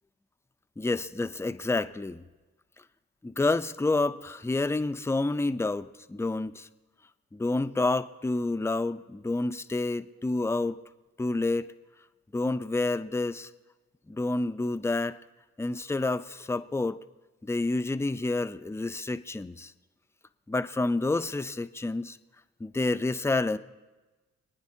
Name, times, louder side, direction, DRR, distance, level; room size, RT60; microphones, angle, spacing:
voice 1, 0.8-2.2 3.2-6.7 7.3-10.8 11.2-11.7 12.3-13.5 14.1-15.2 15.6-17.0 17.4-19.7 20.5-22.2 22.6-23.6, left 2 dB, 10° left, 10 dB, 0.5 m, -29 dB
27.0 x 9.6 x 2.7 m, 1.2 s
supercardioid pair, 45°, 35 cm